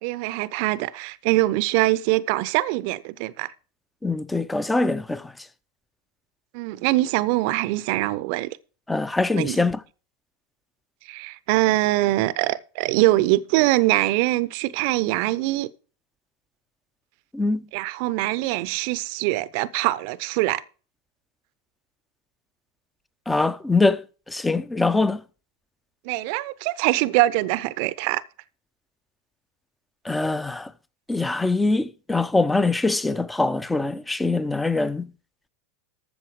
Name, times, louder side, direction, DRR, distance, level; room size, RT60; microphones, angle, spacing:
voice 1, 0.0-3.5 6.5-8.6 9.4-9.6 11.1-15.7 17.7-20.6 26.0-28.2, right 18 dB, 55° right, 0.8 m, -23 dB
voice 2, 4.0-5.2 8.9-9.8 17.3-17.7 23.3-24.0 24.3-25.2 30.0-30.7 31.1-35.1, left 3 dB, 10° left, 0.8 m, -23 dB
13.5 x 7.0 x 4.9 m
hypercardioid pair, 95°, 0 cm